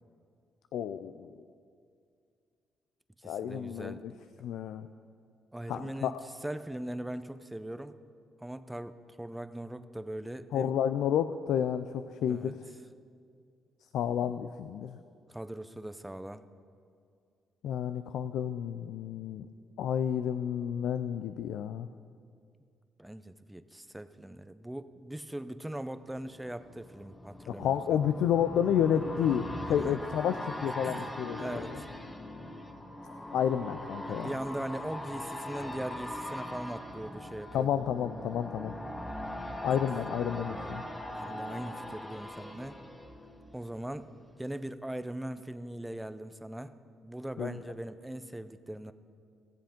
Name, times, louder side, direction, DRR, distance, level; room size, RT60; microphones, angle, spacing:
voice 1, 0.7-1.3 3.2-4.1 4.4-4.9 5.7-6.2 10.5-12.6 13.9-15.0 17.6-19.5 19.8-21.9 27.5-31.7 33.3-34.3 37.5-38.7 39.6-40.8 47.4-47.5, left 9 dB, 80° left, 11 dB, 0.3 m, -30 dB
voice 2, 3.2-4.0 5.5-6.2 6.4-8.0 8.4-10.7 12.3-12.5 15.3-16.4 23.0-28.0 29.7-30.0 30.8-31.9 34.1-37.7 41.1-42.8 43.5-44.1 44.4-46.7 47.0-48.9, right 1 dB, 5° right, 11 dB, 0.6 m, -40 dB
sound 1, 26.1-43.9 44.3-44.4, left 1 dB, 15° left, 1.1 m, -41 dB
16.0 x 7.5 x 5.2 m, 2.3 s
cardioid pair, 90°, 0 cm